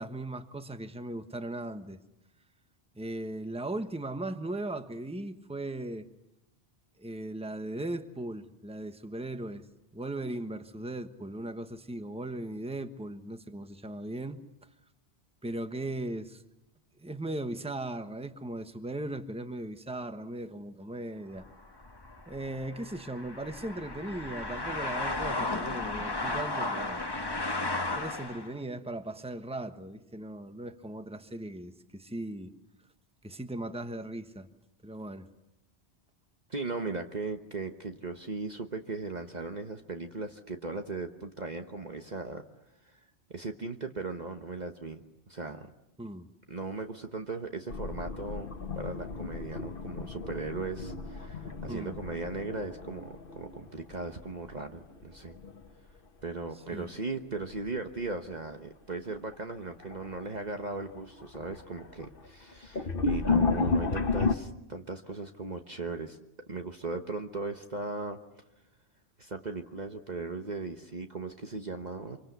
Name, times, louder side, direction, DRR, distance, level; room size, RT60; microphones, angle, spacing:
voice 1, 0.0-2.0 2.9-6.1 7.0-9.7 9.9-14.4 15.4-16.4 17.0-21.5 22.3-27.0 27.9-32.5 33.2-34.5 34.8-35.3 46.0-46.3 51.7-52.0 56.7-56.9, right 1 dB, 5° right, 1.2 m, -38 dB
sound 1, 21.4-28.5, left 2 dB, 20° left, 1.2 m, -34 dB
voice 2, 36.5-42.4 42.8-43.0 43.3-45.7 46.5-55.4 56.2-66.2 66.5-68.2 69.2-72.2, right 3 dB, 40° right, 1.3 m, -38 dB
sound 2, 47.7-54.5 54.8-55.7 57.4-57.7 58.3-58.4 59.3-59.4 59.8-60.3 60.7-64.4, left 4 dB, 55° left, 1.4 m, -33 dB
26.0 x 24.5 x 8.2 m
omnidirectional pair, 1.1 m